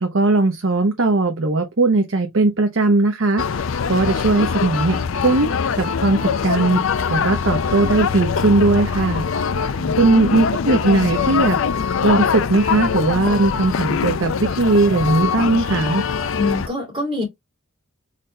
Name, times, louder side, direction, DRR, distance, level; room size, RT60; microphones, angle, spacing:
voice 1, 0.0-3.4 3.9-6.8 7.1-9.2 10.0-11.6 11.8-16.0, right 2 dB, 65° right, 0.8 m, -18 dB
sound 1, 3.4-16.7, left 6 dB, 70° left, 0.5 m, -23 dB
voice 2, 16.3-17.2, left 2 dB, 25° right, 3.0 m, -25 dB
4.2 x 3.9 x 3.3 m
head